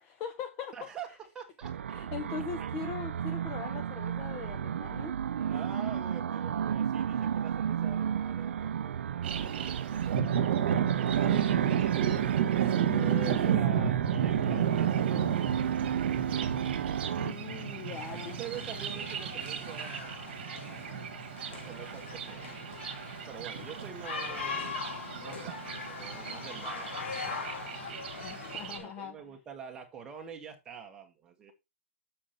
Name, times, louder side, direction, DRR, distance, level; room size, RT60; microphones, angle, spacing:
voice 1, 0.0-0.9 1.9-5.1 12.6-13.8 17.2-18.4 28.2-29.2, left 7 dB, 15° left, 0.5 m, -41 dB
voice 2, 0.7-1.7 2.6-2.7 3.3-3.4 5.4-12.3 13.3-17.0 18.1-20.2 21.5-22.6 23.3-24.7 25.2-31.5, right 7 dB, 10° right, 1.2 m, -47 dB
sound 1, 1.6-17.3, right 8 dB, 65° right, 0.5 m, -33 dB
Thunder, 9.2-28.8, right 9 dB, 45° right, 1.6 m, -32 dB
sound 2, 17.9-28.8, left 5 dB, 60° left, 2.5 m, -41 dB
7.3 x 6.4 x 4.3 m
hypercardioid pair, 175°, 7 cm